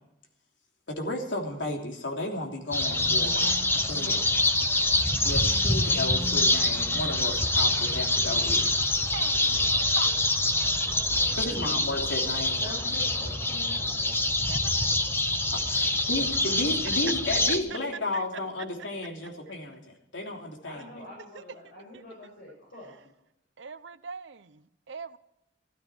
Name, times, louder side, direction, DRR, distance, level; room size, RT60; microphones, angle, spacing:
voice 1, 0.9-4.2 5.2-8.7 11.3-12.5 15.5-19.8 20.1-21.0, left 1 dB, 85° left, 3.2 m, -33 dB
sound 1, 2.7-17.6, left 2 dB, 15° left, 1.0 m, -25 dB
voice 2, 9.1-9.6 9.9-10.1 14.5-15.0 16.8-17.0 18.1-18.2 21.3-21.4 21.9-22.0 23.6-25.2, right 5 dB, 85° right, 0.8 m, -41 dB
voice 3, 11.3-11.8 12.6-14.2 20.6-22.9, left 1 dB, 65° left, 6.6 m, -45 dB
15.0 x 13.5 x 4.5 m
head